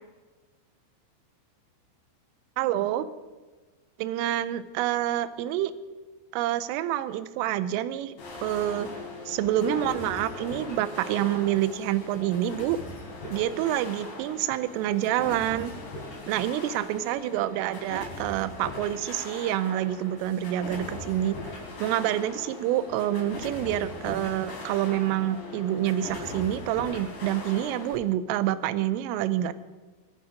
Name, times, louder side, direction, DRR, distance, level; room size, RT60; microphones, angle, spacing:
voice 1, 2.6-3.1 4.0-5.7 6.3-8.1 8.4-8.9 9.3-12.8 13.3-15.7 16.3-21.4 21.8-29.5, right 12 dB, 85° right, 14 dB, 3.3 m, -27 dB
sound 1, 8.2-28.0, left 2 dB, 45° left, 5.2 m, -40 dB
24.0 x 11.0 x 5.0 m, 1.3 s
omnidirectional pair, 5.9 m